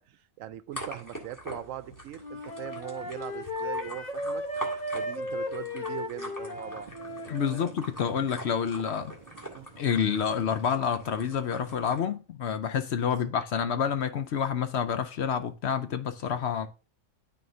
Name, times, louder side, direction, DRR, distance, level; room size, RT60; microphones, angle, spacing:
voice 1, 0.0-6.9 7.5-7.7 9.3-9.7, right 11 dB, 75° right, 0.9 m, -41 dB
sound 1, 0.7-12.0, right 1 dB, 15° left, 1.8 m, -44 dB
Wind instrument woodwind instrument, 2.2-7.7, left 1 dB, 35° left, 1.0 m, -35 dB
sound 2, 6.6-11.8, right 3 dB, 30° right, 2.1 m, -53 dB
voice 2, 7.3-9.1 9.8-16.7, left 7 dB, 60° left, 0.8 m, -28 dB
12.5 x 4.3 x 2.6 m
omnidirectional pair, 1.4 m